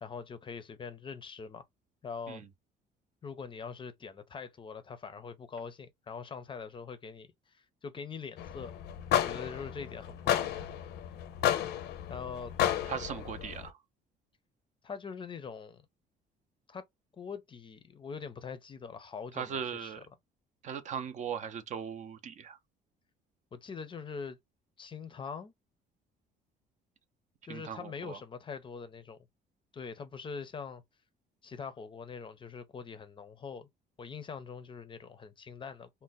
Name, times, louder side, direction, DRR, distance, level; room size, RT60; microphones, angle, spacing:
voice 1, 0.0-1.6 2.0-2.4 3.2-8.7 9.1-10.5 12.1-12.5 14.8-15.8 16.7-16.8 17.2-19.9 23.5-24.4 24.8-25.5 27.4-29.2 29.7-30.8 31.4-33.7 34.0-35.9, left 5 dB, 30° left, 0.5 m, -43 dB
sound 1, 8.4-13.7, left 11 dB, 75° left, 0.6 m, -32 dB
voice 2, 12.9-13.7 19.3-20.0 20.6-22.6 27.5-28.2, right 7 dB, 45° right, 0.5 m, -38 dB
2.5 x 2.1 x 3.9 m
cardioid pair, 110°, 17 cm